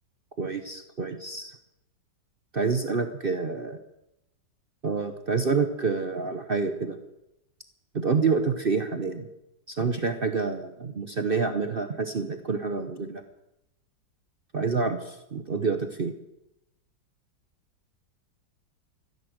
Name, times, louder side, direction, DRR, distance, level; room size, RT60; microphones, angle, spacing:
voice 1, 0.4-1.6 2.5-3.8 4.8-7.0 7.9-9.3 9.7-13.2 14.5-16.1, right 4 dB, 40° right, 7 dB, 0.9 m, -28 dB
14.0 x 11.0 x 7.9 m, 0.86 s
omnidirectional pair, 1.9 m